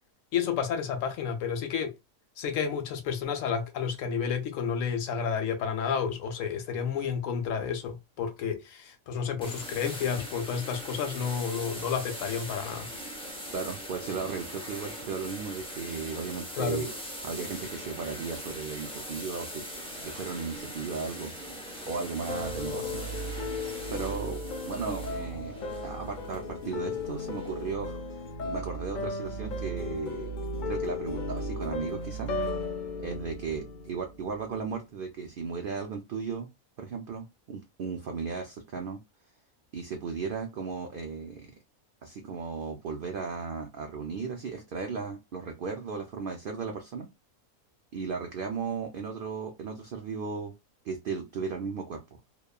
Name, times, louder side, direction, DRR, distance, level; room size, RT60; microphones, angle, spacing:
voice 1, 0.3-1.9 2.4-12.9 16.5-16.8, left 7 dB, 70° left, 0.9 m, -31 dB
sound 1, 9.4-27.7, equal, 10° left, 0.4 m, -41 dB
voice 2, 13.5-16.9 17.2-19.6 19.9-21.3 21.6-23.0 23.9-24.4 24.7-25.5 25.8-28.0 28.4-30.3 30.7-32.3 33.0-36.5 36.8-39.0 39.7-41.5 42.0-47.1 47.9-50.5 50.8-52.0, right 5 dB, 85° right, 0.4 m, -35 dB
sound 2, 22.3-34.4, left 2 dB, 85° left, 0.4 m, -35 dB
2.9 x 2.2 x 2.2 m
omnidirectional pair, 1.5 m